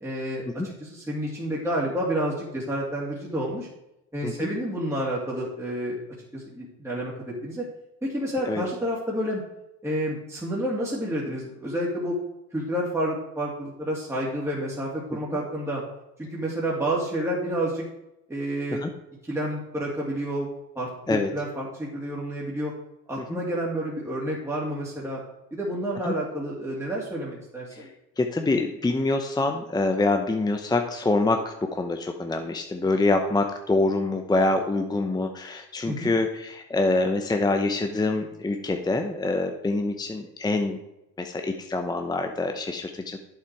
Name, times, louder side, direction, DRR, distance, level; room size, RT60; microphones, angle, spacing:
voice 1, 0.0-3.7 4.1-6.0 6.3-7.1 7.4-7.6 8.0-9.4 9.8-12.2 12.5-15.8 16.2-17.9 18.3-18.8 19.2-20.5 20.7-22.7 23.1-25.2 25.5-27.9 35.9-36.1, right 1 dB, 5° right, -5 dB, 2.5 m, -29 dB
voice 2, 28.2-40.8 41.2-43.2, left 2 dB, 10° left, 5 dB, 0.7 m, -25 dB
8.5 x 7.1 x 4.7 m, 0.89 s
supercardioid pair, 90°, 38 cm